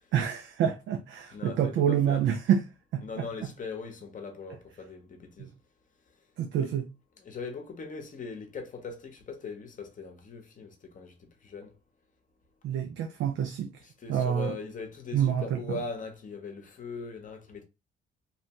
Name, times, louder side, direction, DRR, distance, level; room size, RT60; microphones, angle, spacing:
voice 1, 0.1-2.6 2.9-3.2 5.4-5.5 6.4-6.9 12.6-13.7 14.1-14.5 15.1-15.8, right 9 dB, 75° right, 0.4 m, -27 dB
voice 2, 1.3-2.2 3.0-5.5 6.6-6.7 7.2-11.7 13.8-17.6, left 4 dB, 40° left, 0.8 m, -40 dB
2.8 x 2.1 x 2.8 m
cardioid pair, 90°, 20 cm